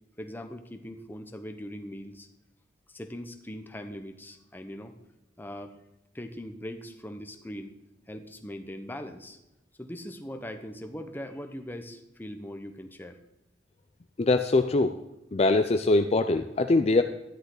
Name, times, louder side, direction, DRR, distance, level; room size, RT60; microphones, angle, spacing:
voice 1, 0.2-2.3 2.9-4.9 5.4-5.8 6.1-7.7 8.1-9.4 9.8-13.2, equal, 10° left, 7 dB, 0.9 m, -40 dB
voice 2, 14.2-15.0 15.3-17.0, left 2 dB, 35° left, 7 dB, 0.4 m, -23 dB
13.0 x 10.5 x 3.9 m, 0.91 s
head